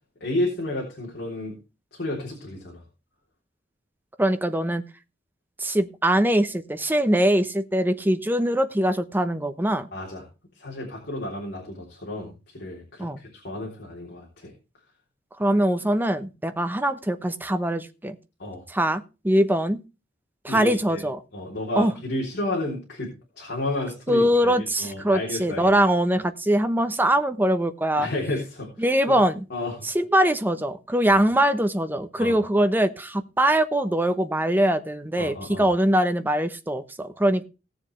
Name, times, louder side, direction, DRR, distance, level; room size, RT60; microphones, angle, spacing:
voice 1, 0.2-1.5 1.9-2.8 9.9-10.2 10.5-14.5 18.4-18.6 20.5-21.0 21.3-25.7 27.9-29.2 29.5-29.9 31.1-31.2 32.2-32.4 35.2-35.7, left 1 dB, 60° left, -2 dB, 3.4 m, -32 dB
voice 2, 4.2-4.8 5.6-9.9 13.0-13.2 15.4-18.2 18.7-19.8 20.4-21.2 21.8-21.9 24.1-28.1 28.8-29.4 29.9-37.5, right 1 dB, 10° right, 9 dB, 0.8 m, -22 dB
18.0 x 7.1 x 3.2 m, 0.29 s
head